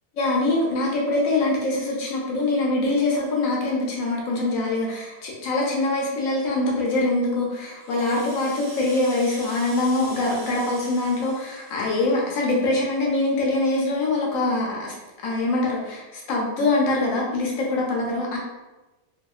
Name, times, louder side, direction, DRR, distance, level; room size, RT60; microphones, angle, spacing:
voice 1, 0.2-14.9 15.2-18.4, left 2 dB, 85° left, -2 dB, 1.0 m, -24 dB
Rattle (instrument), 7.7-12.5, right 1 dB, 60° right, 1.0 m, -43 dB
2.8 x 2.7 x 2.3 m, 1.1 s
omnidirectional pair, 1.4 m